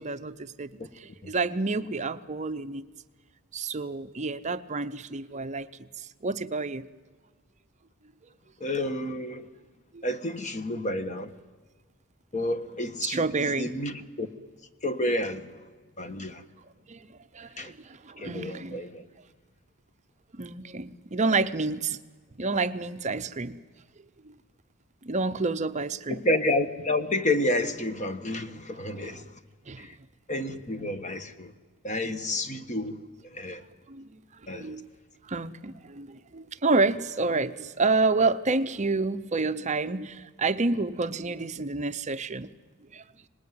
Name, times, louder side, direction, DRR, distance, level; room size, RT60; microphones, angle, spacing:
voice 1, 0.0-2.8 3.5-5.7 6.0-6.9 9.9-10.1 13.0-13.7 16.9-17.0 17.3-18.8 20.3-22.0 22.4-23.5 24.2-24.3 25.0-26.2 29.0-29.2 29.7-29.9 33.9-34.1 34.5-34.9 35.2-42.5 42.9-43.0, right 3 dB, 35° right, 0.7 m, -29 dB
voice 2, 8.6-9.5 10.0-11.3 12.3-13.2 13.6-14.3 14.8-15.5 16.0-16.4 17.6-17.7 18.2-19.0 26.1-29.2 29.8-29.9 30.3-31.5 31.8-33.0 33.3-33.6 34.5-34.8, left 1 dB, 35° left, 1.4 m, -30 dB
26.0 x 19.0 x 9.5 m
head